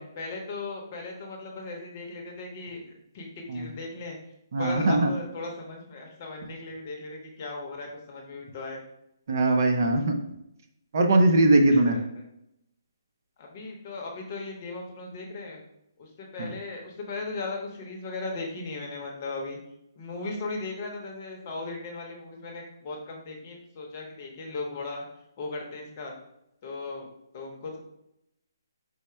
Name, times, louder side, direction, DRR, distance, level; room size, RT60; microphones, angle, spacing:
voice 1, 0.0-4.2 4.6-8.8 11.7-12.2 13.4-15.6 16.0-19.6 20.0-25.1 25.4-26.1 26.6-27.1 27.3-27.8, left 3 dB, 30° left, 0 dB, 0.8 m, -37 dB
voice 2, 4.5-5.1 9.3-10.2 10.9-12.0 16.4-16.5, right 2 dB, 50° right, 4 dB, 0.6 m, -21 dB
4.8 x 2.1 x 4.4 m, 0.82 s
hypercardioid pair, 170°, 2 cm